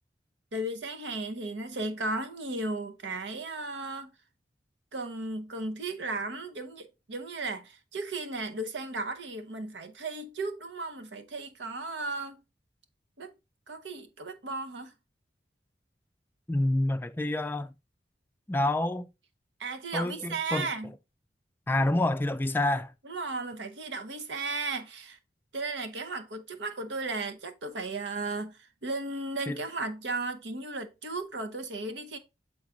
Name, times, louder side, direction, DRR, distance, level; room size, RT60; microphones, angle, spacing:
voice 1, 0.5-4.1 4.9-12.4 13.2-13.3 13.7-14.9 19.6-20.9 23.0-25.2 25.5-32.2, right 2 dB, 80° right, 0.9 m, -35 dB
voice 2, 16.5-17.7 18.5-19.1 19.9-20.7 21.7-22.9 29.5-29.6, left 1 dB, 10° left, 0.3 m, -28 dB
7.2 x 3.9 x 3.7 m
head